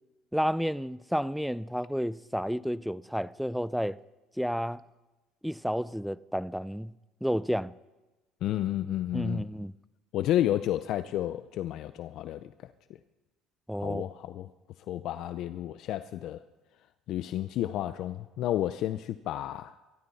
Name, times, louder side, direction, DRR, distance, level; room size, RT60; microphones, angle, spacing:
voice 1, 0.3-4.0 4.4-4.8 5.4-6.9 7.2-7.7 9.1-9.7 13.7-14.0, equal, ahead, 0.5 m, -31 dB
voice 2, 8.4-9.5 10.1-12.7 13.8-14.5 14.9-16.4 17.1-19.7, left 12 dB, 65° left, 0.5 m, -31 dB
23.5 x 13.0 x 4.2 m
supercardioid pair, 90°, 0 cm